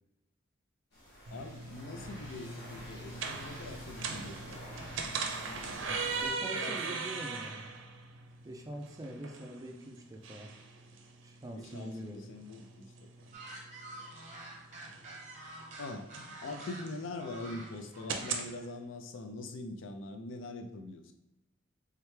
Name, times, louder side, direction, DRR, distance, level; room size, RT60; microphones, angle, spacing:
sound 1, 0.9-6.3, equal, 60° left, 1.4 m, -48 dB
voice 1, 1.3-4.5 6.4-7.0 11.6-13.3 15.8-16.1 16.4-21.1, left 2 dB, 85° left, 6 dB, 0.4 m, -43 dB
sound 2, 1.3-18.5, right 4 dB, 80° right, 0.5 m, -41 dB
voice 2, 5.8-7.7 8.4-10.5 11.2-12.3, right 1 dB, 20° right, 3 dB, 0.4 m, -44 dB
sound 3, 13.3-18.6, right 2 dB, 40° right, 0.8 m, -47 dB
3.6 x 3.3 x 3.1 m, 0.95 s
head